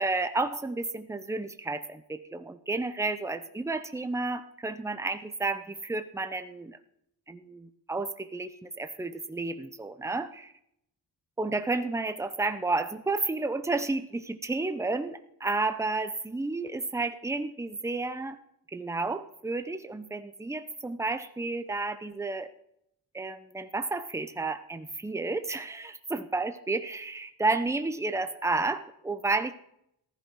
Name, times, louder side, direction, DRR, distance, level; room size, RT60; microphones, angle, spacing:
voice 1, 0.0-6.8 7.3-10.5 11.4-18.4 18.7-22.5 23.1-29.5, right 3 dB, 5° right, 9 dB, 0.7 m, -31 dB
15.0 x 13.5 x 4.7 m, 0.74 s
wide cardioid pair, 160°, 40 cm